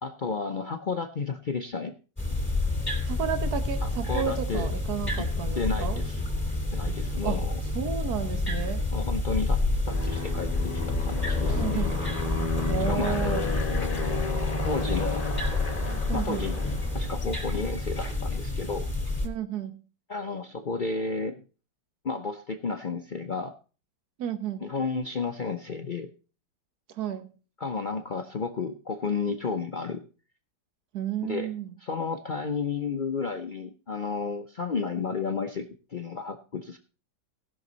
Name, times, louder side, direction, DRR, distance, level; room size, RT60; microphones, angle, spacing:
voice 1, 0.0-2.0 3.8-4.7 5.2-5.3 5.6-6.2 6.7-7.6 8.9-9.6 9.9-11.9 12.9-13.7 14.6-15.2 16.1-16.6 16.9-18.9 20.1-21.4 22.0-23.5 24.6-26.1 27.6-30.0 31.2-31.5 31.8-36.8, left 4 dB, 75° left, 5 dB, 0.4 m, -32 dB
sound 1, 2.2-19.3, left 2 dB, 5° left, 2.7 m, -29 dB
voice 2, 3.0-6.0 7.2-7.4 7.7-8.8 11.6-12.0 12.7-13.5 16.1-16.5 19.2-19.7 24.2-24.7 27.0-27.3 30.9-31.7, right 9 dB, 60° right, 8 dB, 1.6 m, -32 dB
Aircraft, 9.9-17.2, left 4 dB, 25° left, 1.1 m, -33 dB
18.0 x 6.3 x 3.9 m, 0.35 s
omnidirectional pair, 1.9 m